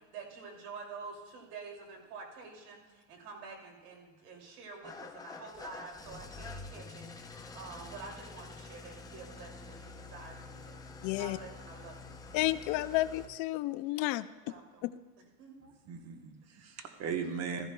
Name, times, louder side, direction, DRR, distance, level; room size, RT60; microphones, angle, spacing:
voice 1, 0.1-12.2 14.4-14.8 15.4-15.7, right 4 dB, 90° right, 1 dB, 2.8 m, -48 dB
Engine starting / Idling, 4.8-13.3, left 3 dB, 10° left, 0.6 m, -47 dB
voice 2, 11.0-11.4 12.3-14.3 14.8-14.9, left 17 dB, 50° left, 12 dB, 0.5 m, -31 dB
voice 3, 15.6-17.7, right 6 dB, 35° right, 6 dB, 1.2 m, -38 dB
14.5 x 14.5 x 2.3 m, 1.3 s
supercardioid pair, 130°, 46 cm